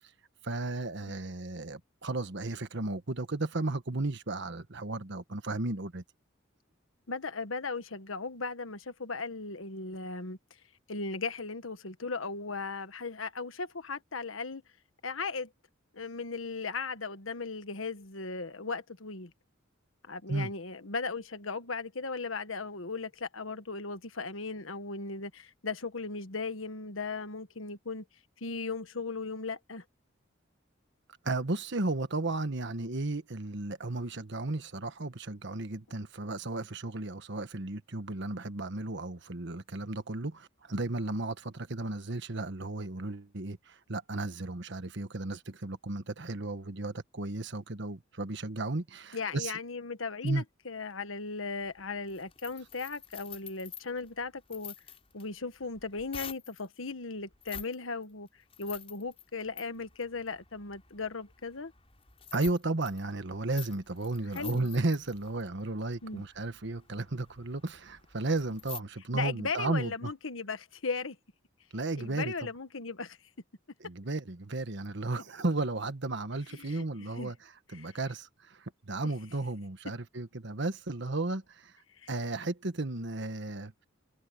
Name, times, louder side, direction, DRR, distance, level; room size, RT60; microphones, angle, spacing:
voice 1, 0.4-6.0 20.3-20.5 31.2-49.5 50.2-50.4 62.3-70.1 71.7-72.3 73.8-77.3 77.7-81.7 82.1-83.7, right 2 dB, 65° right, 1.4 m, -34 dB
voice 2, 7.1-10.4 10.9-14.6 15.0-15.5 15.9-19.3 20.1-28.0 28.4-29.8 49.1-54.7 55.1-58.3 58.6-61.7 64.3-64.7 66.0-66.2 69.1-71.2 72.0-73.2 76.5-76.9 77.2-77.3 77.7-77.9 82.0-82.1, left 4 dB, 85° left, 1.5 m, -37 dB
sound 1, 51.6-56.7 57.3-57.8 58.0-68.8, left 8 dB, 30° left, 4.8 m, -48 dB
head